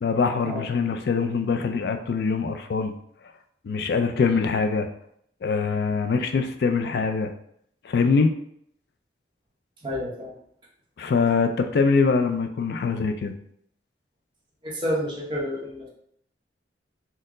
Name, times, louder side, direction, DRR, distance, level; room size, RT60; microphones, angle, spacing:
voice 1, 0.0-2.9 3.6-4.9 5.4-7.3 7.8-8.3 11.0-13.3, left 5 dB, 60° left, 7 dB, 0.3 m, -23 dB
voice 2, 9.8-10.3 14.6-15.9, equal, 25° right, -4 dB, 0.9 m, -29 dB
4.2 x 2.0 x 3.6 m, 0.68 s
head